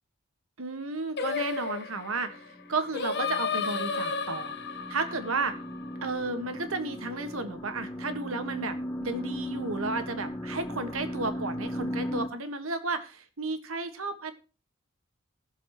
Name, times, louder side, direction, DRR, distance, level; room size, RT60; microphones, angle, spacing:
voice 1, 0.6-4.5 4.9-5.6 6.0-14.3, right 3 dB, 75° right, 9 dB, 1.6 m, -33 dB
Singing, 1.2-6.5, left 5 dB, 55° left, 1.2 m, -33 dB
sound 1, 2.0-12.3, equal, 15° left, 1.8 m, -37 dB
20.0 x 7.2 x 3.0 m, 0.33 s
head